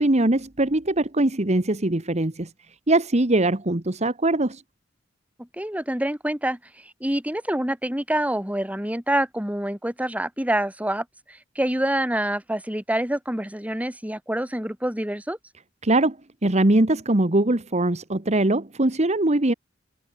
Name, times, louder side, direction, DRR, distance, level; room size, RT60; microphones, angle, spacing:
voice 1, 0.0-2.5 2.9-4.6 15.8-16.2 16.4-19.5, right 2 dB, 35° right, 1.5 m, -21 dB
voice 2, 5.4-15.4, right 1 dB, 10° right, 3.3 m, -27 dB
head